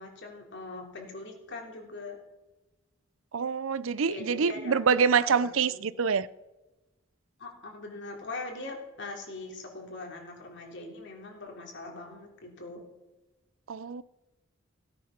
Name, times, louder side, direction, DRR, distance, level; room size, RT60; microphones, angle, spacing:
voice 1, 0.0-2.2 4.1-6.0 7.4-12.8, left 2 dB, 60° left, 3.2 m, -42 dB
voice 2, 3.3-6.3 13.7-14.0, right 6 dB, 75° right, 0.5 m, -26 dB
16.5 x 9.6 x 5.9 m
head